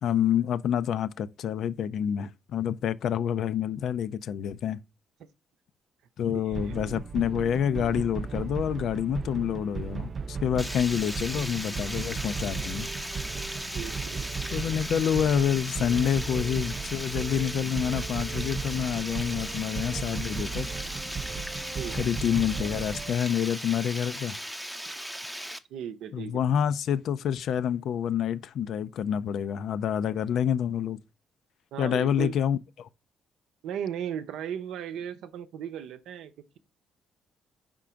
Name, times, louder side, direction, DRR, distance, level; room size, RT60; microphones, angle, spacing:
voice 1, 0.0-4.8 6.2-12.9 14.5-20.7 21.9-24.4 26.1-31.0 31.8-32.9, left 9 dB, 70° left, 0.4 m, -28 dB
voice 2, 6.3-6.9 13.7-14.3 21.7-22.0 25.7-26.4 31.7-32.3 33.6-36.6, right 9 dB, 85° right, 0.6 m, -37 dB
sound 1, 6.5-23.1, right 5 dB, 40° right, 0.3 m, -36 dB
Water, 10.6-25.6, equal, ahead, 0.6 m, -37 dB
5.0 x 3.7 x 5.6 m
cardioid pair, 90°, 0 cm